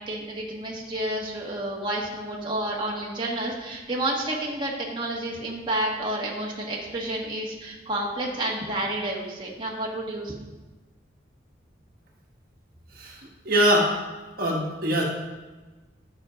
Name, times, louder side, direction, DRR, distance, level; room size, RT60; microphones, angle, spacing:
voice 1, 0.1-10.3, right 1 dB, 25° right, -4 dB, 1.5 m, -30 dB
voice 2, 13.5-13.9 14.4-15.0, equal, 50° right, -1 dB, 1.6 m, -22 dB
11.5 x 6.4 x 5.1 m, 1.2 s
head